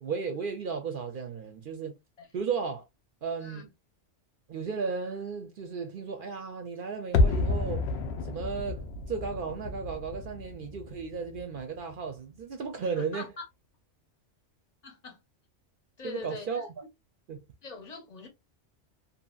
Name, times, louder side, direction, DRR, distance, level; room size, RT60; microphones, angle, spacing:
voice 1, 0.0-1.9 2.3-2.8 3.2-3.7 4.5-7.8 8.2-13.3 16.0-16.7 17.3-17.4, right 5 dB, 60° right, 0.6 m, -34 dB
sound 1, 7.1-12.1 12.3-12.4, left 3 dB, 70° left, 0.8 m, -30 dB
voice 2, 12.8-13.5 14.8-15.2 16.0-16.6 17.6-18.3, left 4 dB, 40° left, 0.9 m, -42 dB
2.7 x 2.7 x 2.3 m
omnidirectional pair, 1.2 m